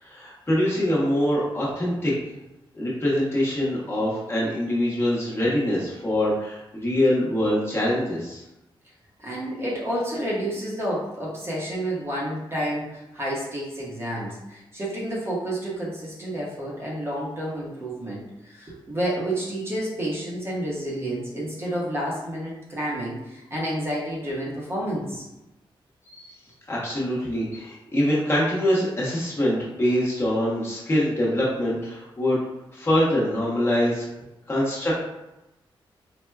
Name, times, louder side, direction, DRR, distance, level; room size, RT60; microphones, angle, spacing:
voice 1, 0.0-2.1 2.7-8.4 26.1-26.3 26.7-32.4 32.7-34.1 34.5-35.0, left 1 dB, 25° left, -7 dB, 0.9 m, -24 dB
voice 2, 9.2-25.3, right 1 dB, 25° right, -5 dB, 0.8 m, -30 dB
4.3 x 2.1 x 2.3 m, 0.95 s
wide cardioid pair, 135°, 9 cm